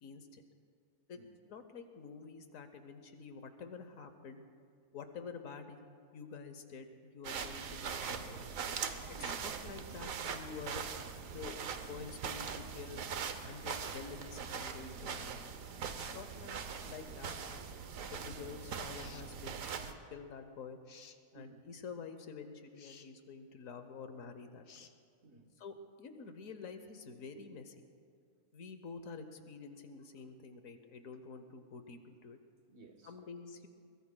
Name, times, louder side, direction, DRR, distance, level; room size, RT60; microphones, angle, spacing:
voice 1, 0.0-0.4 1.1-1.2 1.5-4.4 4.9-5.8 6.1-8.5 9.2-10.9 11.2-13.0 13.4-15.5 16.0-17.8 18.1-20.8 21.3-24.9 25.6-27.8 28.5-32.4 33.0-33.7, left 5 dB, 75° left, 1.2 m, -48 dB
sound 1, 7.2-19.9, right 6 dB, 75° right, 1.2 m, -42 dB
voice 2, 8.8-9.5 21.3-21.6 25.2-25.6 28.3-28.4 32.7-33.3, right 3 dB, 55° right, 1.4 m, -58 dB
sound 2, 18.9-19.3 20.9-21.2 22.7-23.1 24.6-24.9, left 7 dB, 50° left, 0.8 m, -56 dB
23.0 x 21.0 x 2.2 m
omnidirectional pair, 1.4 m